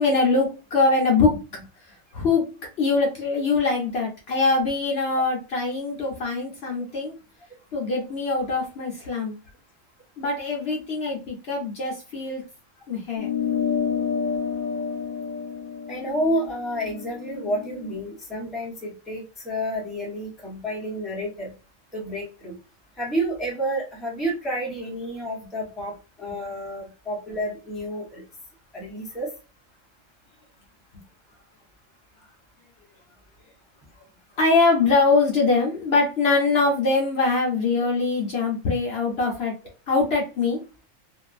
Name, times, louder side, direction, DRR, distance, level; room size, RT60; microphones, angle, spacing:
voice 1, 0.0-1.6 2.1-7.1 7.7-9.3 10.2-12.4 12.9-13.3 34.4-39.5 39.9-40.6, left 3 dB, 55° left, -2 dB, 0.9 m, -23 dB
sound 1, 13.2-18.0, left 7 dB, 85° left, 1.0 m, -29 dB
voice 2, 15.9-21.5 21.9-22.6 23.0-25.9 26.2-28.2 28.7-29.3, right 1 dB, ahead, -4 dB, 0.8 m, -30 dB
2.6 x 2.5 x 2.4 m, 0.31 s
omnidirectional pair, 1.4 m